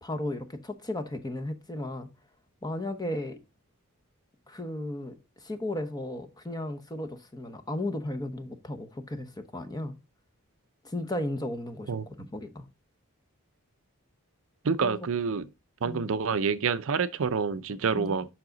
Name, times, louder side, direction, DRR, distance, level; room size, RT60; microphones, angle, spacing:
voice 1, 0.0-2.1 2.6-3.4 4.5-5.1 5.4-9.9 10.8-12.7 14.8-14.9 15.8-16.1 17.9-18.2, left 1 dB, 15° left, 0.9 m, -35 dB
voice 2, 14.6-15.5 15.8-18.3, right 5 dB, 60° right, 0.5 m, -27 dB
7.6 x 5.8 x 3.9 m
head